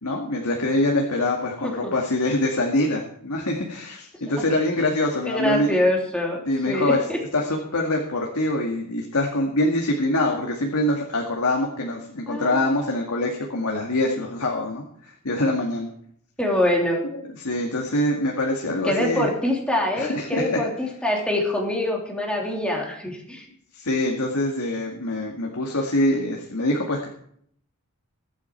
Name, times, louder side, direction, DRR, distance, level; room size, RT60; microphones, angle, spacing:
voice 1, 0.0-5.8 6.5-7.0 7.3-15.9 17.4-19.3 20.0-20.6 23.7-27.1, left 1 dB, 90° left, 0 dB, 2.1 m, -24 dB
voice 2, 5.2-7.2 12.3-12.6 16.4-17.0 18.8-23.5, left 1 dB, 5° left, -1 dB, 3.2 m, -24 dB
22.0 x 8.6 x 4.6 m, 0.66 s
head